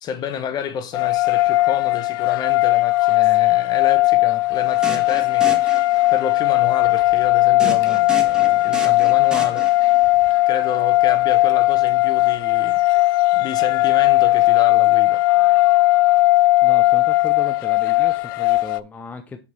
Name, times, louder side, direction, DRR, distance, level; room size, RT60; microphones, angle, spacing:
voice 1, 0.0-5.6 6.1-9.7 10.5-12.8 13.3-15.3, left 8 dB, 35° left, 1.0 m, -30 dB
sound 1, 0.9-18.8, left 18 dB, 60° left, 0.4 m, -17 dB
sound 2, 4.6-6.3 7.6-10.1, right 1 dB, 5° right, 1.7 m, -33 dB
voice 2, 16.6-19.4, left 3 dB, 15° left, 0.7 m, -36 dB
6.4 x 5.7 x 4.4 m
hypercardioid pair, 120°, 12 cm